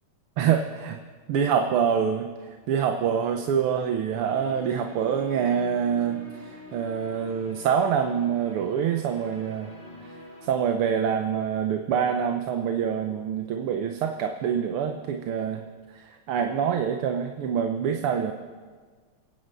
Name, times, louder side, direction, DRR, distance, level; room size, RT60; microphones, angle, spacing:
voice 1, 0.4-1.0 1.3-2.3 2.7-9.7 10.4-15.6 15.9-18.3, right 7 dB, 85° right, 5 dB, 1.8 m, -26 dB
sound 1, 4.1-10.5, left 1 dB, 30° left, 3.3 m, -45 dB
27.5 x 9.3 x 5.5 m, 1.5 s
omnidirectional pair, 2.4 m